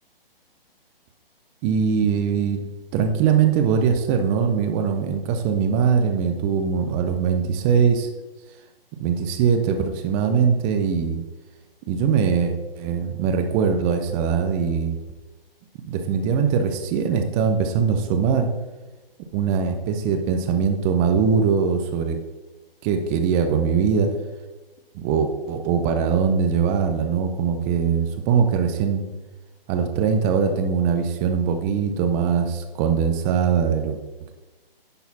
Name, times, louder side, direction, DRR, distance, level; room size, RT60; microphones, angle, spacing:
voice 1, 1.6-8.1 9.0-11.2 11.9-15.0 15.9-18.5 19.3-22.2 22.8-24.1 24.9-29.0 29.7-34.0, right 6 dB, 15° right, 6 dB, 0.5 m, -21 dB
10.5 x 4.1 x 4.1 m, 1.1 s
figure-of-eight pair, 135°, 30 cm